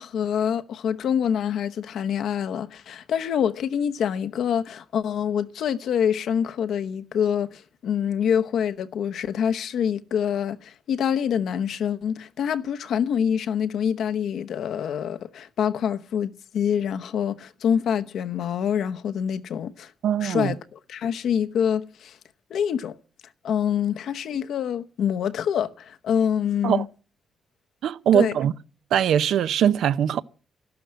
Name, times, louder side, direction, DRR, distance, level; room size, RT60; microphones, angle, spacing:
voice 1, 0.0-19.9 20.2-22.2 22.5-23.0 23.4-26.9 28.1-28.3, left 8 dB, 80° left, 0.9 m, -26 dB
voice 2, 20.0-20.5 26.6-26.8 27.8-28.5 28.9-30.2, right 9 dB, 85° right, 0.7 m, -21 dB
13.0 x 12.0 x 7.6 m
cardioid pair, 135°, 0 cm